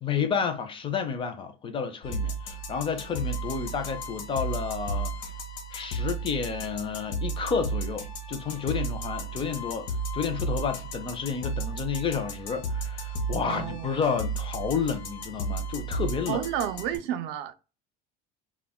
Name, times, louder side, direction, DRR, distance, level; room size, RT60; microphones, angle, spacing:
voice 1, 0.0-5.1 5.7-16.4, left 6 dB, 25° left, 0.4 m, -31 dB
sound 1, 2.0-17.0, right 2 dB, 75° left, 0.7 m, -34 dB
voice 2, 13.4-13.9 16.3-17.5, right 10 dB, 70° right, 0.4 m, -31 dB
2.1 x 2.1 x 3.5 m
cardioid pair, 130°, 19 cm